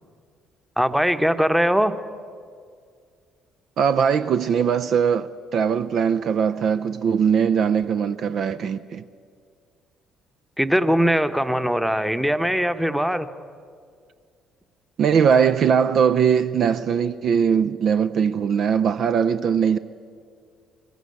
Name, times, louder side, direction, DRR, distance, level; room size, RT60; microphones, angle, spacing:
voice 1, 0.8-2.0 10.6-13.3, equal, ahead, 1.0 m, -21 dB
voice 2, 3.8-9.0 15.0-19.8, right 7 dB, 50° right, 0.5 m, -20 dB
22.0 x 14.5 x 9.7 m
figure-of-eight pair, 45°, 0 cm